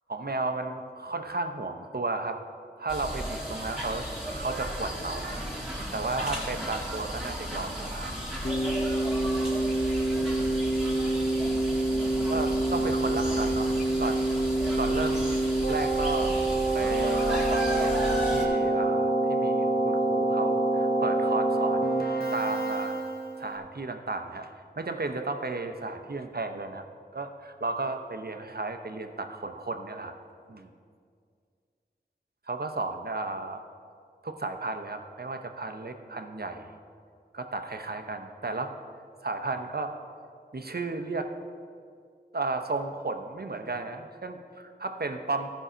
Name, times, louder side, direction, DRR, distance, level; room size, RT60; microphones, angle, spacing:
voice 1, 0.1-2.4 2.8-5.4 5.9-8.1 12.3-14.2 14.7-15.3 15.7-16.3 16.7-22.0 22.3-23.0 23.4-26.8 27.1-30.1 30.5-30.7 32.5-33.6 34.2-36.7 37.3-38.7 39.2-39.9 40.5-41.3 42.3-45.5, right 3 dB, 60° right, 6 dB, 0.7 m, -33 dB
sound 1, 2.9-18.5, equal, 5° right, 1.9 m, -35 dB
Keyboard (musical), 8.4-23.5, right 2 dB, 60° left, 1.0 m, -26 dB
14.0 x 5.6 x 5.0 m, 2.2 s
wide cardioid pair, 50°, 18 cm